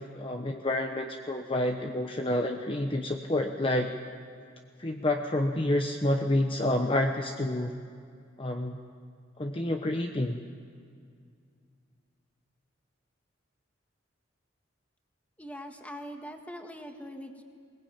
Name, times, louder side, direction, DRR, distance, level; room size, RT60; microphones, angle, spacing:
voice 1, 0.0-3.9 4.8-7.7 8.4-8.8 9.4-10.4, left 1 dB, 30° left, 4 dB, 1.0 m, -29 dB
voice 2, 15.4-17.4, equal, 10° left, 4 dB, 1.8 m, -42 dB
21.5 x 20.5 x 8.8 m, 2.2 s
head